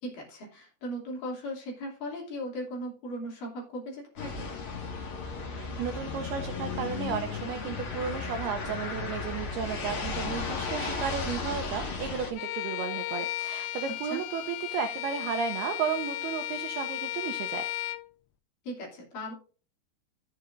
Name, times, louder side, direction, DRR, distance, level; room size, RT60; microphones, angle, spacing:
voice 1, 0.0-4.5 14.1-14.2 18.6-19.3, equal, 50° left, -2 dB, 4.1 m, -38 dB
sound 1, 4.2-12.3, left 4 dB, 65° left, 1.2 m, -35 dB
voice 2, 5.4-17.7, right 7 dB, 80° right, 5 dB, 2.3 m, -34 dB
Bowed string instrument, 12.4-18.1, left 15 dB, 85° left, 2.5 m, -35 dB
14.0 x 7.8 x 2.6 m, 0.37 s
omnidirectional pair, 5.5 m